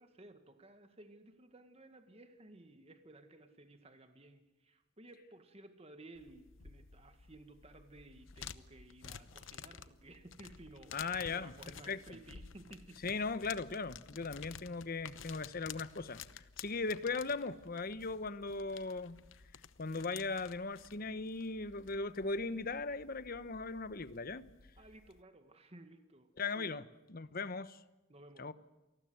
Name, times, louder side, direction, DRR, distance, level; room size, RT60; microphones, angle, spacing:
voice 1, 0.0-13.2 24.8-26.8 28.1-28.5, right 2 dB, 30° right, 1.9 m, -56 dB
sound 1, 6.2-25.2, left 7 dB, 80° left, 0.9 m, -53 dB
voice 2, 10.9-11.5 11.9-12.2 13.0-19.2 19.8-24.5 26.4-26.8 27.1-27.8 28.4-28.5, left 3 dB, 50° left, 1.0 m, -38 dB
28.0 x 19.5 x 7.9 m
head